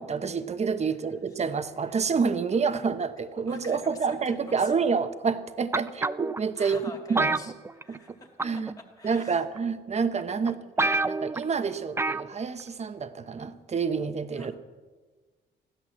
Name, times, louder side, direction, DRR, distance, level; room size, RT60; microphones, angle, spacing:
voice 1, 0.0-7.4 7.9-8.0 8.4-8.7 9.0-14.6, right 5 dB, 35° right, 10 dB, 1.0 m, -28 dB
voice 2, 3.5-4.7 6.6-9.4 10.4-10.7 14.3-14.5, left 2 dB, 15° left, 0 dB, 2.3 m, -46 dB
sound 1, 5.7-6.4 7.2-8.1 8.4-8.7 9.6-9.7 10.2-10.3 10.5-10.6 10.8-11.4 12.0-12.3 12.6-12.7, right 3 dB, 15° right, 0.4 m, -27 dB
15.0 x 11.5 x 7.3 m, 1.3 s
cardioid pair, 90°, 20 cm